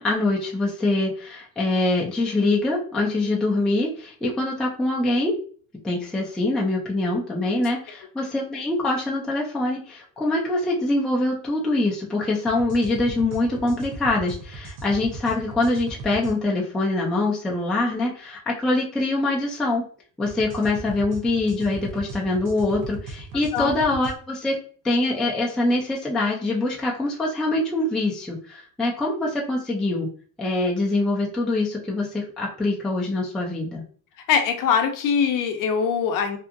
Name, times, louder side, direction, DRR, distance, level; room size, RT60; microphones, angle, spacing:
voice 1, 0.0-5.3 5.8-19.9 20.2-24.6 24.8-30.1 30.4-33.8, left 2 dB, ahead, -3 dB, 0.4 m, -24 dB
sound 1, 12.5-16.4 20.3-24.2, right 3 dB, 85° right, 0.8 m, -38 dB
voice 2, 34.3-36.4, left 7 dB, 50° left, 5 dB, 0.6 m, -22 dB
2.7 x 2.4 x 2.5 m, 0.43 s
cardioid pair, 130°, 41 cm